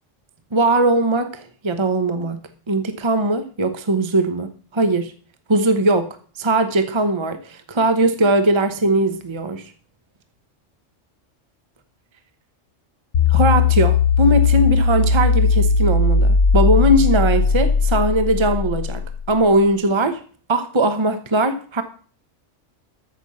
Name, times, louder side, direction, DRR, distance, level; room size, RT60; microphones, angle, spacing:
voice 1, 0.5-2.4 2.7-5.1 5.5-6.1 6.4-9.6 13.3-19.0 19.3-20.2 20.5-21.8, right 2 dB, 25° right, 9 dB, 1.0 m, -19 dB
sound 1, 13.1-19.4, left 5 dB, 80° left, 1.3 m, -17 dB
14.0 x 6.1 x 6.2 m, 0.43 s
omnidirectional pair, 1.3 m